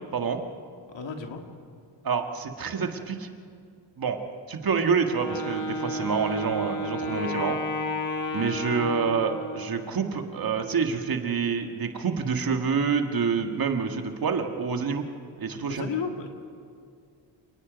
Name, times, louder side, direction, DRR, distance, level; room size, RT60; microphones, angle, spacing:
voice 1, 0.1-0.4 2.0-3.3 4.0-4.2 4.5-7.6 8.3-15.0 15.4-15.8, right 5 dB, 50° right, 5 dB, 1.7 m, -27 dB
voice 2, 0.9-1.4 8.5-8.6 15.7-16.3, left 6 dB, 65° left, 4 dB, 2.2 m, -33 dB
Wind instrument woodwind instrument, 5.1-9.9, left 1 dB, 40° left, 1.6 m, -32 dB
28.5 x 18.5 x 5.2 m, 2.3 s
cardioid pair, 110°, 47 cm